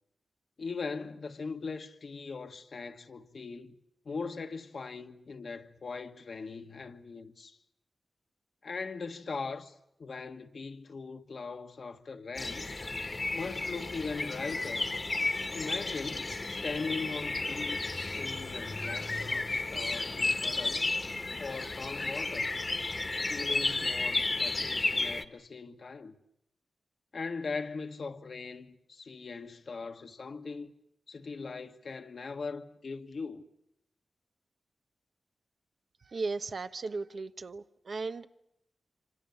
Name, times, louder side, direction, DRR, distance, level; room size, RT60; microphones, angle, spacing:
voice 1, 0.6-3.7 4.0-7.6 8.6-12.7 13.3-14.9 15.5-20.9 21.4-22.6 23.3-26.2 27.1-30.7 31.1-33.4, left 4 dB, 65° left, 1.5 m, -40 dB
sound 1, 12.3-25.2, left 2 dB, 45° left, 1.5 m, -33 dB
voice 2, 36.1-38.3, right 3 dB, 65° right, 1.0 m, -36 dB
26.5 x 25.5 x 7.1 m
cardioid pair, 45°, 0 cm